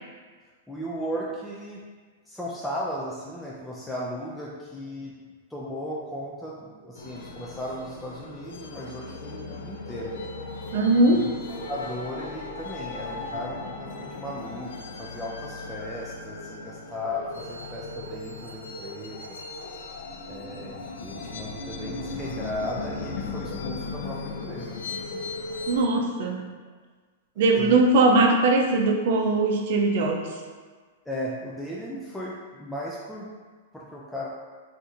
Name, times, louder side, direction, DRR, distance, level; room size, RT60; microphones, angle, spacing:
voice 1, 0.7-1.8 2.3-5.1 5.5-10.1 10.5-10.7 11.1-11.3 11.7-19.4 20.3-20.7 21.0-24.8 25.1-25.2 27.6-27.8 31.1-33.3 33.7-34.3, equal, 5° left, -6 dB, 0.3 m, -36 dB
sound 1, 6.9-25.9, left 3 dB, 80° left, 0.4 m, -37 dB
voice 2, 10.7-11.3 25.7-26.5 27.4-30.3, right 2 dB, 55° right, 2 dB, 0.5 m, -20 dB
2.6 x 2.5 x 4.1 m, 1.5 s
supercardioid pair, 155°, 0 cm